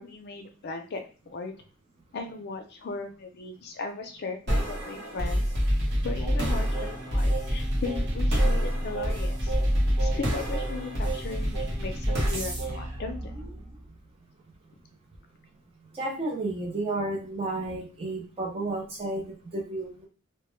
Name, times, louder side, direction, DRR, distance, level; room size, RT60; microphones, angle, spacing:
voice 1, 0.0-1.5 2.1-5.4 6.0-9.5 10.0-13.3, left 4 dB, 50° left, 5 dB, 0.4 m, -37 dB
sound 1, 4.5-13.9, equal, 50° right, 0.9 m, -27 dB
Singing, 6.2-13.0, right 5 dB, 70° right, 1.3 m, -39 dB
voice 2, 15.9-20.1, right 2 dB, 30° right, -3 dB, 0.5 m, -32 dB
2.1 x 2.1 x 3.0 m, 0.36 s
head